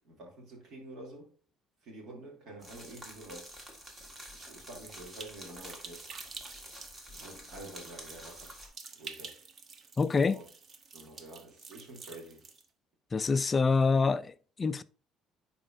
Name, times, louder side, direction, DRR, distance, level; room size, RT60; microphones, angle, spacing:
voice 1, 0.0-1.3 1.8-3.5 4.3-6.1 7.1-8.6 8.9-9.4 10.3-10.4 10.9-12.5, right 2 dB, 55° right, 2.7 m, -48 dB
sound 1, 2.6-8.7, equal, 20° right, 1.6 m, -49 dB
sound 2, 4.8-12.7, right 5 dB, 35° right, 0.8 m, -49 dB
voice 2, 10.0-10.4 13.1-14.8, left 4 dB, 20° left, 0.3 m, -26 dB
10.5 x 4.2 x 2.5 m
cardioid pair, 145°, 0 cm